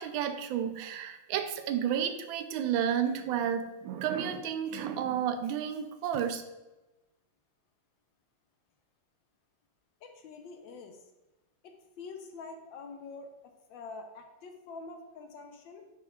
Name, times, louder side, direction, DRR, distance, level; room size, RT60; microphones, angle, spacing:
voice 1, 0.0-6.4, right 9 dB, 75° right, 8 dB, 1.3 m, -31 dB
voice 2, 10.0-11.0 11.6-13.3 13.7-15.8, left 4 dB, 70° left, 5 dB, 1.3 m, -46 dB
10.5 x 4.4 x 2.4 m, 1.0 s
omnidirectional pair, 2.3 m